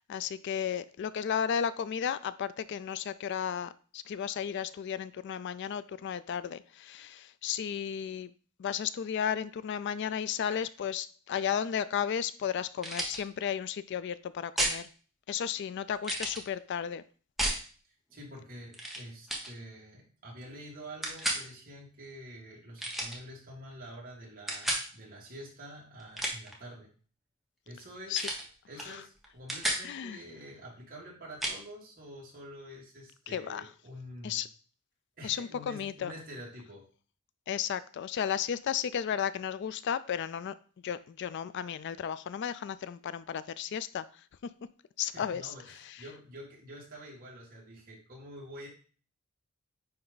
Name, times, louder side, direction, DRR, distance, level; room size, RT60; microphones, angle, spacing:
voice 1, 0.1-8.3 8.6-14.9 15.3-17.0 28.1-28.2 28.8-29.0 29.8-30.2 33.3-33.7 34.2-34.5 35.2-36.1 37.5-40.5 40.8-44.1 45.0-45.5 45.9-46.0, left 8 dB, 55° left, 15 dB, 0.3 m, -34 dB
sound 1, 12.8-13.2 14.6-14.8 16.0-16.4 17.4-17.6 18.7-19.0 19.3-19.5 21.0-21.4 22.8-23.2 24.5-24.9 26.0-26.5 28.1-28.4 28.8-28.9 29.2-29.8 31.4-31.6, right 1 dB, ahead, 1.1 m, -32 dB
voice 2, 17.9-26.9 27.7-28.3 28.7-34.4 35.2-36.9 45.0-48.7, equal, 40° right, -4 dB, 2.7 m, -47 dB
9.6 x 3.4 x 3.9 m, 0.40 s
head